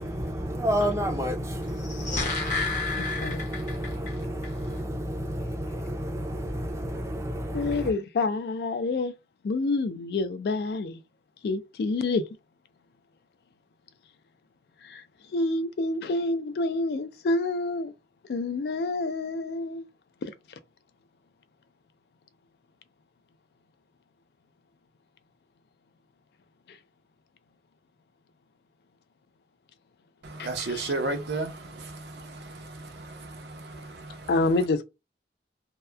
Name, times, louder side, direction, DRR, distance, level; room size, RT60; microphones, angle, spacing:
voice 1, 0.0-7.9, equal, 15° right, 0.4 m, -31 dB
sound 1, 1.7-4.1 4.4-4.5, left 3 dB, 45° left, 0.8 m, -31 dB
voice 2, 3.0-3.4 7.5-9.1 9.4-11.0 11.4-12.3 14.8-15.0 15.3-17.9 18.3-19.8 20.2-20.3 30.4-30.9 34.3-34.8, left 3 dB, 65° left, 0.3 m, -28 dB
voice 3, 30.2-34.3, right 2 dB, 75° right, 0.6 m, -34 dB
2.8 x 2.1 x 2.2 m
head